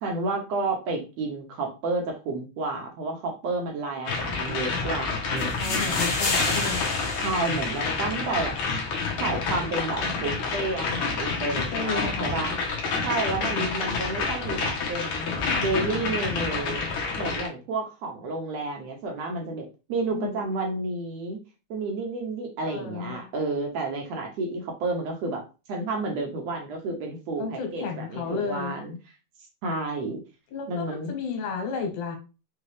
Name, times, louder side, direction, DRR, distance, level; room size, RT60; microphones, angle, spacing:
voice 1, 0.0-6.0 7.2-8.5 9.2-12.5 13.0-16.8 17.2-21.4 21.7-25.4 25.7-28.9 29.6-30.2 30.7-31.1, right 3 dB, 75° right, 2 dB, 1.8 m, -31 dB
sound 1, 4.1-17.5, left 4 dB, 65° left, 1.5 m, -29 dB
sound 2, 5.4-8.4, left 2 dB, 50° left, 1.8 m, -30 dB
voice 2, 5.6-6.9 8.0-8.1 11.5-12.4 13.3-13.8 20.1-20.5 22.6-23.3 27.4-28.8 30.5-32.2, left 5 dB, 90° left, 3 dB, 2.6 m, -33 dB
5.5 x 2.3 x 3.2 m, 0.31 s
omnidirectional pair, 3.4 m